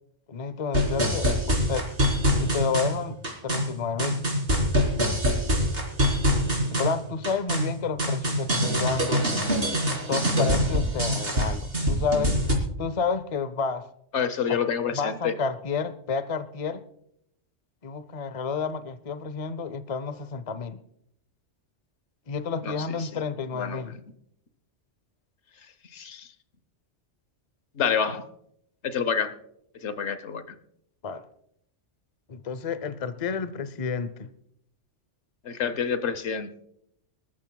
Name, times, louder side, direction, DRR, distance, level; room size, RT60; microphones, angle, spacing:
voice 1, 0.3-1.9 2.4-3.2 3.4-4.2 6.7-9.2 10.1-12.4 12.8-13.9 14.5-14.6 14.9-16.8 17.8-20.8 22.3-23.9 30.1-30.2 31.0-31.2 32.3-34.3, left 5 dB, 35° left, 13 dB, 0.7 m, -30 dB
sound 1, 0.7-12.5, equal, 50° right, 3.9 m, -25 dB
voice 2, 14.1-15.3 22.6-22.7 23.0-23.2 23.5-24.0 25.9-26.3 27.7-28.2 28.8-29.3 29.8-30.4 35.4-36.5, left 7 dB, 70° left, 11 dB, 1.3 m, -28 dB
25.5 x 13.5 x 2.3 m, 0.74 s
omnidirectional pair, 1.2 m